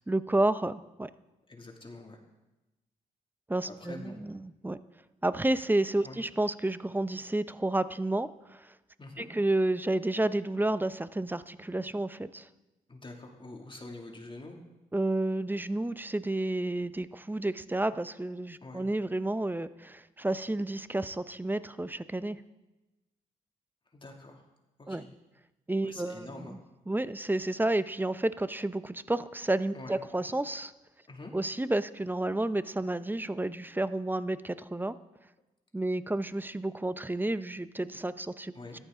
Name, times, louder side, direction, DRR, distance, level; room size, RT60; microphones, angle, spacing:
voice 1, 0.1-1.1 3.5-4.8 5.2-8.7 9.2-12.5 14.9-22.4 24.9-25.1 25.7-26.6 26.9-30.7 31.3-35.0 35.7-38.8, right 2 dB, 10° right, 14 dB, 0.7 m, -31 dB
voice 2, 1.5-2.2 3.6-4.2 6.0-6.2 9.0-9.3 12.9-14.6 18.6-18.8 23.9-24.5 24.8-25.1 25.8-26.6 29.7-30.0 31.1-31.3 38.5-38.8, left 2 dB, 30° left, 0 dB, 2.6 m, -45 dB
14.0 x 11.5 x 3.8 m, 1.0 s
supercardioid pair, 45°, 17 cm